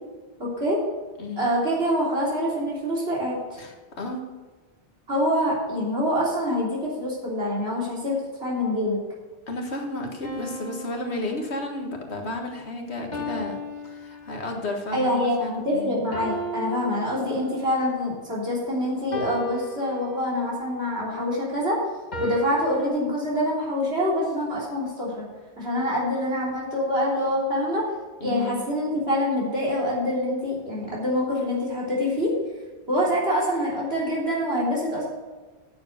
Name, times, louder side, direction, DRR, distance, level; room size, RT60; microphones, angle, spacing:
voice 1, 0.4-0.8 1.4-3.6 5.1-8.1 8.4-9.0 14.9-21.8 22.2-25.3 25.6-27.9 28.2-32.3 32.9-35.0, equal, 65° right, -5 dB, 3.6 m, -25 dB
voice 2, 3.6-4.3 9.5-13.6 13.8-16.0 28.2-28.6, left 2 dB, 75° left, 2 dB, 1.9 m, -32 dB
sound 1, 10.2-12.0 13.1-14.7 16.1-17.8 19.1-20.6 22.1-22.9, equal, 40° left, 1.7 m, -36 dB
9.4 x 7.0 x 6.6 m, 1.3 s
omnidirectional pair, 1.1 m